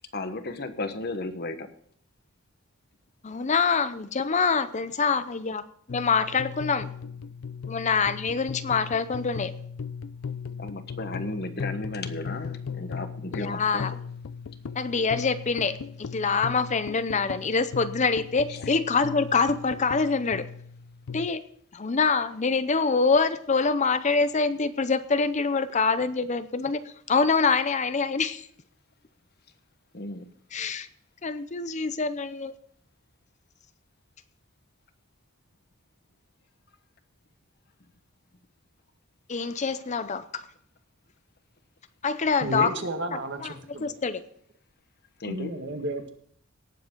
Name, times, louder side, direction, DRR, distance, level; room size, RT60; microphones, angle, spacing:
voice 1, 0.1-1.7 10.6-13.9 29.9-30.3 45.2-45.5, left 2 dB, 50° left, 9 dB, 1.3 m, -34 dB
voice 2, 3.2-5.6 5.9-6.9 7.7-9.6 13.3-13.9 14.7-20.5 21.1-21.4 21.7-28.5 30.5-30.9 31.2-32.5 39.3-40.5 42.0-42.7 43.4-43.5 43.8-44.2, left 4 dB, 35° left, 12 dB, 0.6 m, -25 dB
sound 1, 5.9-21.3, left 6 dB, 85° left, 0.5 m, -38 dB
voice 3, 42.4-43.9 45.3-46.1, right 1 dB, 60° right, 5 dB, 1.9 m, -32 dB
18.0 x 7.7 x 3.9 m, 0.63 s
head